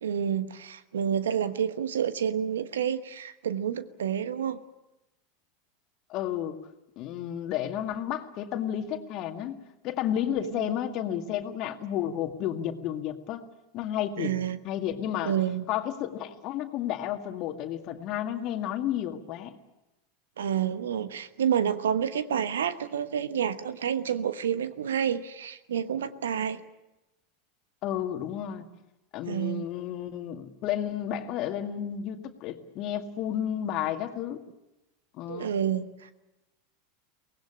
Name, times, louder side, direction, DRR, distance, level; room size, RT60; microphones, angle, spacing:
voice 1, 0.0-4.6 10.4-10.7 14.2-14.6 15.2-15.7 20.4-26.6 29.3-29.6 35.3-36.1, right 9 dB, 70° right, 13 dB, 1.1 m, -29 dB
voice 2, 6.1-6.6 7.0-13.4 13.7-14.3 14.6-15.3 15.7-19.6 27.8-28.7 29.1-34.4 35.1-35.5, left 10 dB, 45° left, 7 dB, 1.9 m, -32 dB
24.0 x 19.0 x 8.7 m, 0.98 s
figure-of-eight pair, 85°, 0 cm